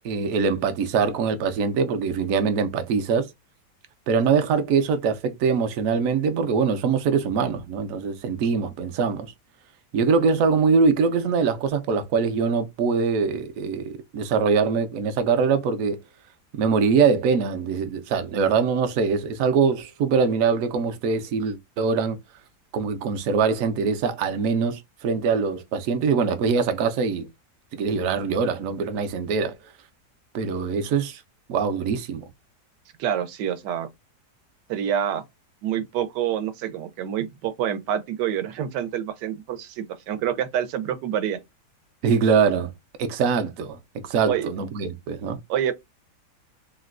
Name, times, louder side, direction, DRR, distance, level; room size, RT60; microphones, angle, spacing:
voice 1, 0.0-3.3 4.1-9.3 9.9-16.0 16.5-22.2 22.7-27.3 27.7-29.6 30.3-31.2 31.5-32.2 42.0-42.7 43.0-43.8 44.1-45.4, right 5 dB, 70° right, 0.8 m, -23 dB
voice 2, 33.0-33.9 34.7-35.2 35.6-41.4 44.3-44.5 45.5-45.7, right 9 dB, 90° right, 1.2 m, -27 dB
3.7 x 2.1 x 2.4 m
omnidirectional pair, 1.8 m